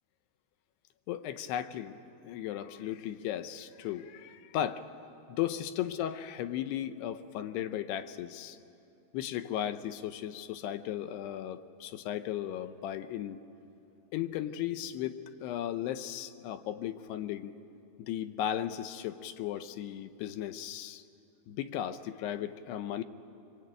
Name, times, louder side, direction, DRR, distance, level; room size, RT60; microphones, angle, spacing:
voice 1, 1.1-8.6 9.1-13.4 14.1-17.6 18.0-21.0 21.5-23.0, left 11 dB, 80° left, 10 dB, 2.9 m, -36 dB
25.5 x 24.0 x 9.1 m, 2.6 s
omnidirectional pair, 4.8 m